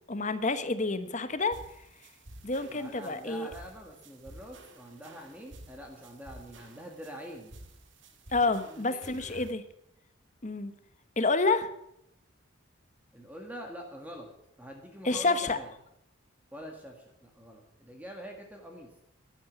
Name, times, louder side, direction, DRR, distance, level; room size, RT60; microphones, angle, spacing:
voice 1, 0.1-1.6 2.4-3.5 8.3-9.6 10.4-10.7 11.2-11.7 15.0-15.6, left 3 dB, 35° left, 11 dB, 1.1 m, -28 dB
sound 1, 1.5-9.5, right 1 dB, 65° right, 1.8 m, -52 dB
voice 2, 2.5-7.5 8.6-9.4 13.1-14.3 14.6-15.7 16.5-18.9, equal, 10° right, 1 dB, 1.8 m, -45 dB
11.5 x 11.5 x 8.0 m, 0.79 s
head